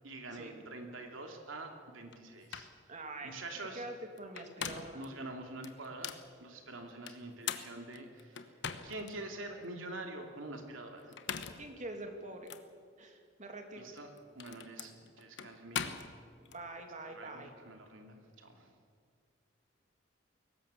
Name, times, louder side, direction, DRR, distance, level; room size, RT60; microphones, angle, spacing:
voice 1, 0.0-2.7 3.2-3.9 4.9-6.1 6.4-8.5 8.8-11.2 13.8-16.0 17.0-18.7, right 2 dB, 85° right, 3 dB, 2.9 m, -46 dB
sound 1, 2.1-2.2 2.5-2.8 4.2-5.1 5.6-6.3 7.1-9.1 9.6-9.7 11.0-11.7 12.5-12.6 13.9-16.6, left 7 dB, 65° left, 1.1 m, -41 dB
voice 2, 2.9-3.3 3.7-5.0 11.5-12.5 13.0-13.9 16.5-17.5, right 2 dB, 40° right, 4 dB, 2.7 m, -45 dB
22.5 x 19.0 x 7.1 m, 2.1 s
head